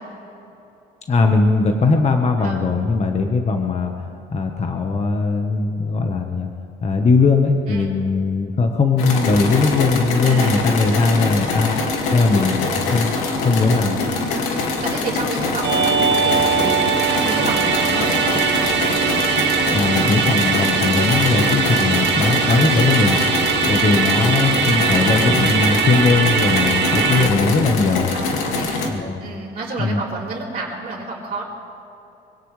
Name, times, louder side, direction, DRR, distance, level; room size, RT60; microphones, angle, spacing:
voice 1, 1.1-3.9 4.3-6.5 6.8-11.8 12.1-14.0 19.7-23.2 23.7-28.1 28.9-29.2 29.8-30.0, left 4 dB, 30° left, 4 dB, 1.3 m, -19 dB
sound 1, 9.0-28.9, left 3 dB, 85° left, 2.2 m, -24 dB
voice 2, 10.2-11.1 13.9-18.2 21.7-22.6 28.1-28.9 29.2-31.4, right 3 dB, 35° right, -8 dB, 3.3 m, -30 dB
Musical instrument, 15.6-27.3, right 6 dB, 55° right, 1.7 m, -20 dB
24.5 x 17.0 x 3.3 m, 2.9 s
cardioid pair, 105°, 21 cm